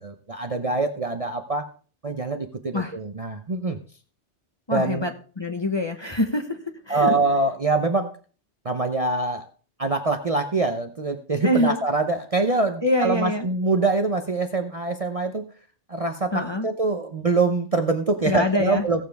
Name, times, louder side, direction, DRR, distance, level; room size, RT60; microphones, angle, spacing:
voice 1, 0.0-1.7 2.0-3.8 4.7-5.1 6.9-8.1 8.6-9.4 9.8-15.5 15.9-19.0, right 3 dB, 35° right, 5 dB, 0.8 m, -24 dB
voice 2, 4.7-6.6 6.9-7.1 11.4-11.8 12.8-13.5 16.3-16.7 18.2-19.0, left 1 dB, 25° left, 5 dB, 1.1 m, -25 dB
16.5 x 7.3 x 3.5 m, 0.39 s
omnidirectional pair, 1.2 m